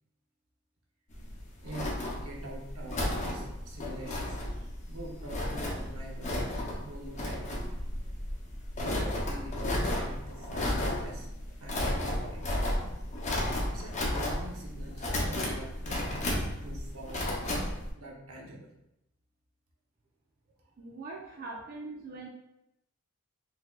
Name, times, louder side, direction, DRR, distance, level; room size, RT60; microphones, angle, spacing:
sound 1, 1.1-17.9, left 1 dB, 35° left, 0.6 m, -33 dB
voice 1, 1.6-4.4 4.9-6.4 6.7-7.5 8.8-11.3 11.6-12.5 13.6-16.3 16.6-18.8 21.5-21.6, right 1 dB, 85° right, -1 dB, 0.8 m, -45 dB
voice 2, 20.8-22.3, right 3 dB, 40° right, -3 dB, 0.5 m, -42 dB
3.9 x 2.8 x 2.3 m, 0.86 s
head